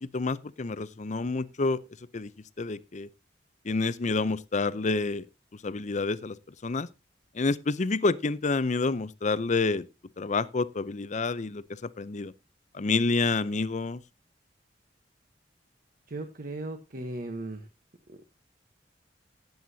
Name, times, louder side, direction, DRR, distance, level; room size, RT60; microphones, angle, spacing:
voice 1, 0.0-1.8 2.1-2.3 2.6-3.1 3.6-5.3 5.6-6.3 6.6-6.9 7.3-9.9 10.2-12.3 12.7-14.0, left 3 dB, 40° left, 0.6 m, -28 dB
voice 2, 16.1-17.7 18.1-18.2, right 2 dB, 50° right, 1.1 m, -37 dB
17.5 x 7.9 x 2.8 m
head